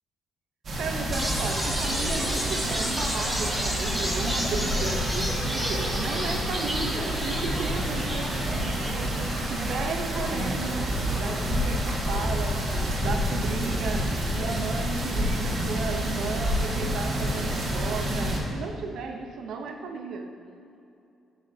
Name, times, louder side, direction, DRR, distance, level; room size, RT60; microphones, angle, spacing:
sound 1, 0.6-18.4, equal, 55° right, 1.7 m, -29 dB
voice 1, 0.8-20.3, right 4 dB, 75° right, 4 dB, 0.7 m, -34 dB
sound 2, 1.1-15.1, equal, ahead, 1.6 m, -33 dB
10.5 x 6.2 x 2.7 m, 2.7 s
cardioid pair, 90°, 0 cm